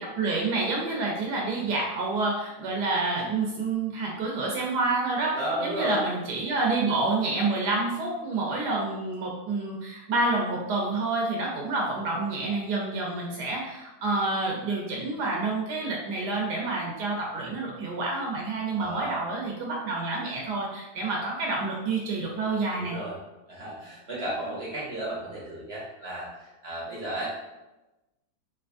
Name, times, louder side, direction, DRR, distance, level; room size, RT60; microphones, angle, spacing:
voice 1, 0.0-23.0, right 3 dB, 80° right, -1 dB, 1.2 m, -28 dB
voice 2, 5.3-6.0 18.8-19.2 22.8-23.1 23.5-26.3 26.6-27.3, right 1 dB, 55° right, -6 dB, 0.7 m, -33 dB
3.3 x 2.8 x 2.4 m, 1.0 s
omnidirectional pair, 1.8 m